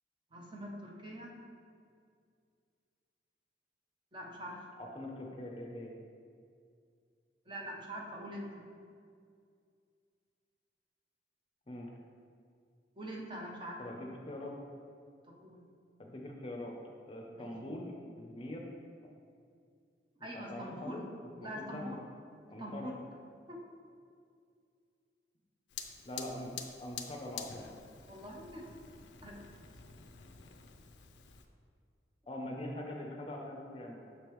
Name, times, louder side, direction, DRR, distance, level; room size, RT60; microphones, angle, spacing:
voice 1, 0.3-1.4 4.1-4.7 7.5-8.6 13.0-13.8 15.3-15.6 17.4-17.5 20.2-21.0 21.4-22.0 22.6-23.0 23.5-23.6 28.1-28.7 29.2-29.6, equal, 25° right, -1 dB, 0.7 m, -44 dB
voice 2, 4.8-5.9 11.7-11.9 13.8-14.6 16.0-16.8 17.1-17.9 18.2-18.8 20.3-21.0 21.4-22.0 22.5-22.9 26.0-26.5 26.8-27.7 32.3-34.0, left 1 dB, 30° left, 0 dB, 0.6 m, -43 dB
Fire, 25.7-31.5, left 7 dB, 80° left, 0.5 m, -48 dB
6.6 x 5.1 x 3.1 m, 2.3 s
head